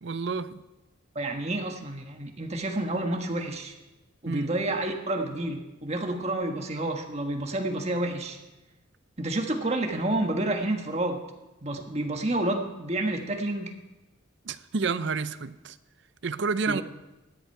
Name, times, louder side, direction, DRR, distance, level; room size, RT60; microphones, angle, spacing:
voice 1, 0.0-0.6 4.2-4.5 14.5-15.8 16.2-16.8, right 4 dB, 65° right, 14 dB, 0.6 m, -29 dB
voice 2, 1.1-3.7 4.2-8.4 9.2-11.2 11.6-13.7 16.7-16.8, right 1 dB, 35° right, 3 dB, 1.4 m, -29 dB
16.5 x 10.5 x 4.6 m, 1.0 s
head